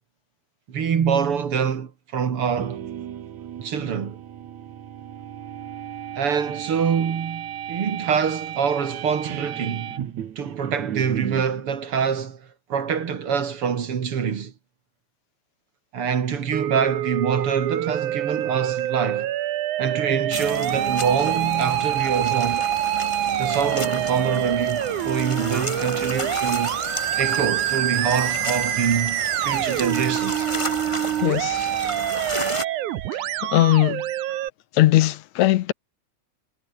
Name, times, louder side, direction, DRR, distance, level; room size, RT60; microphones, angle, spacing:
voice 1, 0.7-2.9 3.6-4.2 6.2-10.0 10.4-14.5 15.9-19.3 19.8-22.7 23.4-26.8 27.2-30.5, right 7 dB, 50° right, 2.6 m, -25 dB
sound 1, 2.4-11.5, right 10 dB, 75° right, 3.0 m, -35 dB
Musical instrument, 16.5-34.5, right 13 dB, 90° right, 2.6 m, -26 dB
sound 2, 20.3-32.7, left 1 dB, 10° left, 5.3 m, -32 dB
voice 2, 31.2-31.8 33.1-33.2 33.5-34.0 34.7-35.7, left 15 dB, 75° left, 2.1 m, -19 dB
omnidirectional pair, 3.4 m